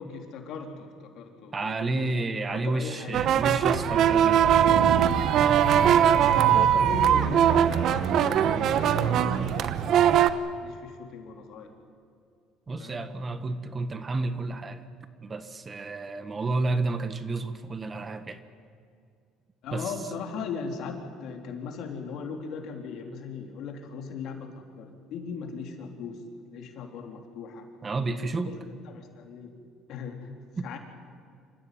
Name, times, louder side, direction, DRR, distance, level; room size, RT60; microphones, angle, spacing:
voice 1, 0.0-3.2 5.6-10.3 10.6-11.7 12.8-13.1 16.3-16.4 19.6-27.7 28.4-29.5 29.9-30.3 30.6-30.8, left 5 dB, 65° left, 4 dB, 3.6 m, -38 dB
voice 2, 1.5-4.8 12.7-14.9 15.2-18.4 19.7-19.9 27.8-28.5 30.6-30.7, right 3 dB, 25° right, 11 dB, 1.5 m, -31 dB
sound 1, 3.1-10.3, right 9 dB, 60° right, 1.1 m, -21 dB
27.0 x 15.0 x 9.5 m, 2.3 s
cardioid pair, 105°, 0 cm